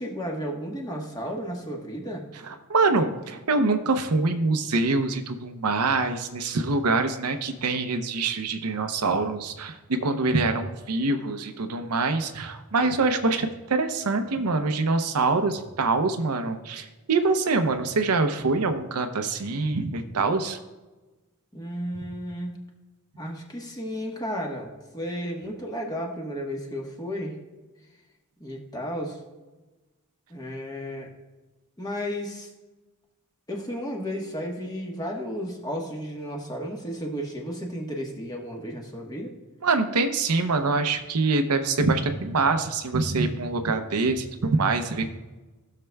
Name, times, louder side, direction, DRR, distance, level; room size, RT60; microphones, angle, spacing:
voice 1, 0.0-2.3 21.5-22.6 23.1-27.3 28.4-29.2 30.3-31.1 31.8-32.5 33.5-39.3, equal, 15° left, -1 dB, 1.3 m, -33 dB
voice 2, 2.4-20.6 39.6-45.1, right 3 dB, 85° right, 7 dB, 0.7 m, -25 dB
15.5 x 6.6 x 2.3 m, 1.2 s
head